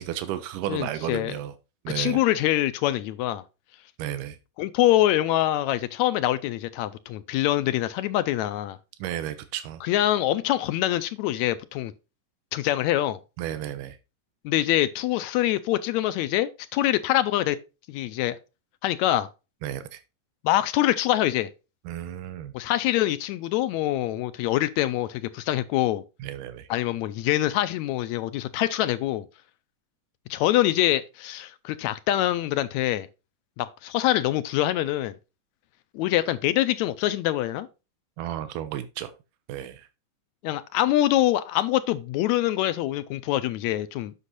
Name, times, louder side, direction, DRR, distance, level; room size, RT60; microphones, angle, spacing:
voice 1, 0.0-1.5 1.8-2.2 4.0-4.4 9.0-9.8 13.4-14.0 19.6-20.0 21.9-22.5 26.2-26.7 38.2-39.1 39.5-39.9, right 11 dB, 90° right, 2.3 m, -33 dB
voice 2, 0.7-1.4 2.0-3.4 4.6-8.8 9.8-11.9 12.5-13.2 14.5-17.6 17.9-18.4 18.8-19.3 20.4-21.5 22.5-26.0 26.7-29.3 30.3-33.1 33.6-35.2 35.9-37.7 40.4-44.1, left 14 dB, 80° left, 1.7 m, -24 dB
8.2 x 6.2 x 4.1 m
omnidirectional pair, 3.6 m